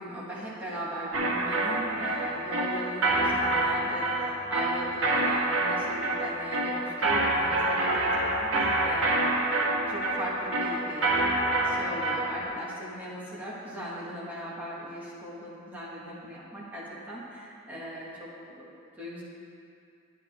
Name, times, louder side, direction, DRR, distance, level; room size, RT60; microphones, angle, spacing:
voice 1, 0.0-18.3 18.6-19.2, equal, 10° right, -8 dB, 1.8 m, -39 dB
sound 1, 1.1-12.4, right 2 dB, 75° right, 1.1 m, -27 dB
9.8 x 8.7 x 3.6 m, 2.5 s
head